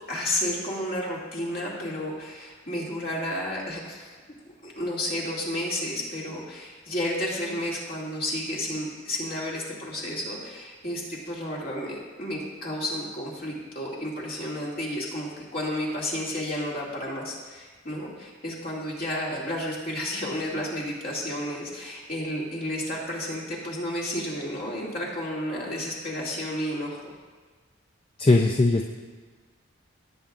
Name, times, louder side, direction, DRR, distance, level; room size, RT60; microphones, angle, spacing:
voice 1, 0.1-4.1 4.6-27.1, left 1 dB, 50° left, -4 dB, 2.6 m, -32 dB
voice 2, 28.2-28.9, left 2 dB, 30° left, 2 dB, 0.5 m, -19 dB
18.0 x 8.5 x 2.5 m, 1.4 s
head